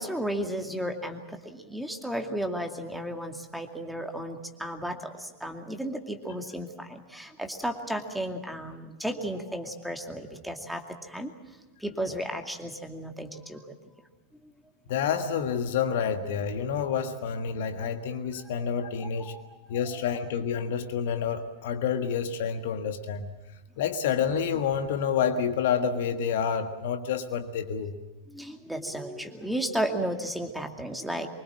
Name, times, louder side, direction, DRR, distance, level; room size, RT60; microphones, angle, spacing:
voice 1, 0.0-11.3 11.8-13.8 14.4-14.5 18.5-18.6 19.0-19.8 28.3-31.3, right 1 dB, ahead, 4 dB, 2.4 m, -34 dB
voice 2, 14.9-19.3 19.7-23.3 23.8-28.0, left 7 dB, 55° left, 7 dB, 1.5 m, -28 dB
25.0 x 24.0 x 7.5 m, 1.1 s
figure-of-eight pair, 90°, 0 cm